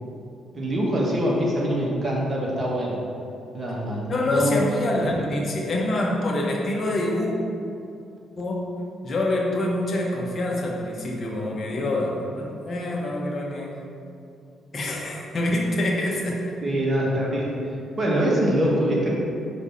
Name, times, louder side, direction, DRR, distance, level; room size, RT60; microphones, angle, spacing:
voice 1, 0.5-3.0 3.5-4.6 5.0-5.2 16.6-17.6 18.0-19.1, equal, 35° right, -4 dB, 1.5 m, -24 dB
voice 2, 4.1-7.3 8.4-8.6 9.0-13.8 14.7-16.4, left 1 dB, 45° left, -2 dB, 1.1 m, -26 dB
5.0 x 3.4 x 5.6 m, 2.5 s
cardioid pair, 90°, 0 cm